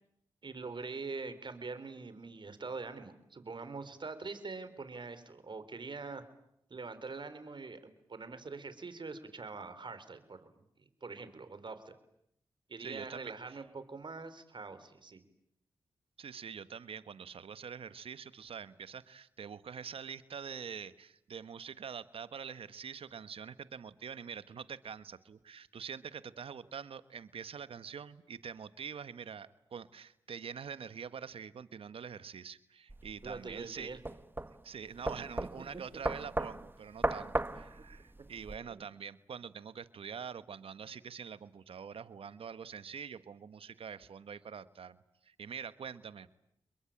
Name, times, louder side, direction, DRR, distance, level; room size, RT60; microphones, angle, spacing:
voice 1, 0.4-6.2 6.7-10.6 11.0-11.9 12.7-15.2 33.2-34.0 38.7-38.8, right 4 dB, 55° right, 11 dB, 4.0 m, -44 dB
voice 2, 12.8-13.6 16.2-33.9 34.6-45.0 45.2-46.3, right 7 dB, 70° right, 14 dB, 1.4 m, -45 dB
sound 1, 32.9-38.6, right 2 dB, 20° right, 1.8 m, -37 dB
29.0 x 22.5 x 8.9 m, 0.76 s
supercardioid pair, 40°, 10 cm